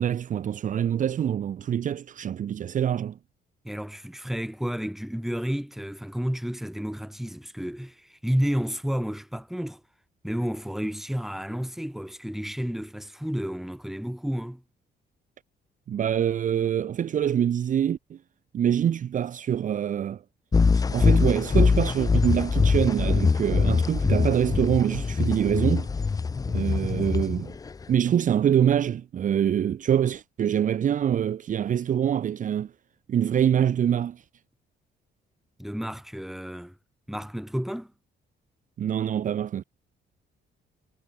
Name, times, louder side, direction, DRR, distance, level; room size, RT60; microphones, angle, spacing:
voice 1, 0.0-3.2 15.9-18.2 18.5-20.2 20.7-25.9 26.5-27.6 27.9-32.7 33.1-34.2 38.8-39.6, right 9 dB, 45° right, 1.0 m, -25 dB
voice 2, 3.6-9.8 10.2-14.6 35.6-36.8 37.1-37.9, equal, ahead, 6.0 m, -31 dB
sound 1, 20.5-27.9, left 4 dB, 20° left, 0.7 m, -23 dB
cardioid pair, 160°, 19 cm